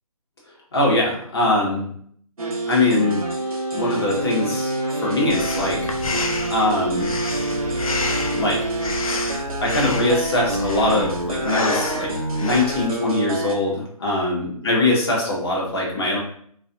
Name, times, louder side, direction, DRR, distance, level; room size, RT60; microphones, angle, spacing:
voice 1, 0.7-1.8 2.7-3.2 3.7-5.9 6.5-7.1 8.3-8.7 9.6-12.1 12.4-16.2, left 2 dB, 40° left, -3 dB, 0.9 m, -22 dB
sound 1, 2.4-13.5, right 2 dB, 65° right, 0.6 m, -27 dB
Breathing, 5.3-12.9, left 3 dB, 65° left, 0.4 m, -29 dB
2.4 x 2.3 x 2.6 m, 0.62 s
figure-of-eight pair, 145°, 19 cm